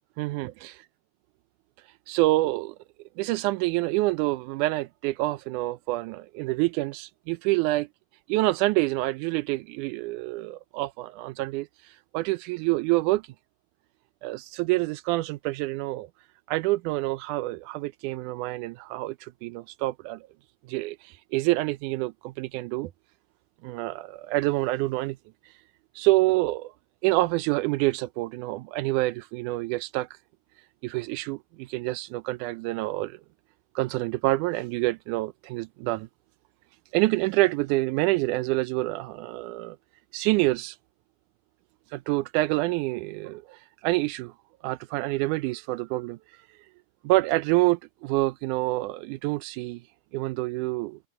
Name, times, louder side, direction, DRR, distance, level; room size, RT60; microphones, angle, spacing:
voice 1, 0.2-0.8 1.8-2.8 3.2-7.9 8.3-13.3 14.2-16.1 16.5-20.2 20.7-22.9 23.6-25.2 25.4-25.6 26.0-26.7 27.0-30.2 30.6-33.2 33.8-36.1 36.9-39.8 40.1-40.8 41.9-44.3 44.6-46.7 47.0-49.8 50.1-51.0, right 20 dB, 80° right, 2.0 m, -27 dB
omnidirectional pair, 3.7 m